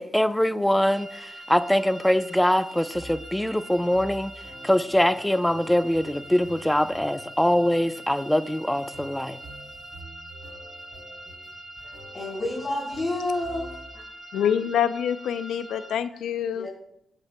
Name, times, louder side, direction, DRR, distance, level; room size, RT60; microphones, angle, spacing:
voice 1, 0.0-4.3 4.6-9.4, left 1 dB, 5° left, 11 dB, 0.7 m, -23 dB
sound 1, 0.8-16.0, right 1 dB, 40° right, 1.4 m, -43 dB
sound 2, 2.9-14.1, right 1 dB, 85° right, 3.2 m, -48 dB
voice 2, 12.1-13.7 16.5-16.7, left 2 dB, 30° left, -7 dB, 4.0 m, -29 dB
voice 3, 14.3-16.7, left 9 dB, 90° left, 13 dB, 0.5 m, -26 dB
17.0 x 8.3 x 2.3 m, 0.76 s
cardioid pair, 75°, 0 cm